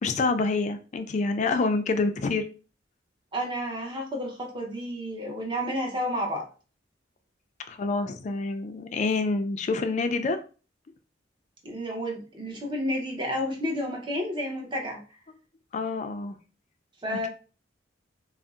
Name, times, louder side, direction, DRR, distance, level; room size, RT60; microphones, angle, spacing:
voice 1, 0.0-2.5 7.7-10.4 15.7-16.3, left 3 dB, 40° left, 0.3 m, -27 dB
voice 2, 3.3-6.5 11.6-15.0 17.0-17.3, equal, 25° right, 0.7 m, -31 dB
2.6 x 2.0 x 3.5 m
head